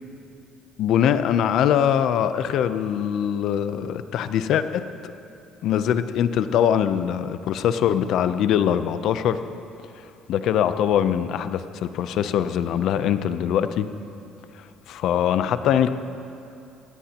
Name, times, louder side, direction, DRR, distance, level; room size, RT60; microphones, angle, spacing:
voice 1, 0.8-5.1 5.6-9.4 10.3-13.9 14.9-15.9, left 9 dB, 65° left, 11 dB, 0.6 m, -22 dB
20.5 x 17.5 x 3.0 m, 2.7 s
cardioid pair, 125°, 0 cm